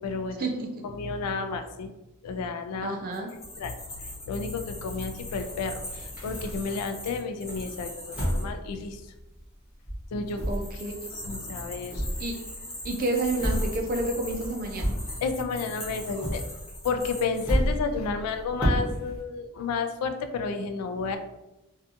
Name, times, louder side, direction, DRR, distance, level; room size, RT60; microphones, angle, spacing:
voice 1, 0.0-0.5 0.8-1.9 2.2-3.0 3.6-9.0 10.1-10.4 11.3-12.0 15.2-16.4 16.8-21.2, left 4 dB, 85° left, 8 dB, 0.3 m, -31 dB
voice 2, 2.8-3.3 10.5-11.1 12.2-12.3 12.8-15.0, right 2 dB, 40° right, 2 dB, 0.4 m, -30 dB
sound 1, 3.1-8.4 10.3-17.4, left 1 dB, 30° left, 0.8 m, -41 dB
sound 2, 4.9-7.0 7.5-9.6 9.8-15.5 15.8-19.2, equal, 5° right, 0.7 m, -32 dB
2.7 x 2.3 x 2.4 m, 0.97 s
head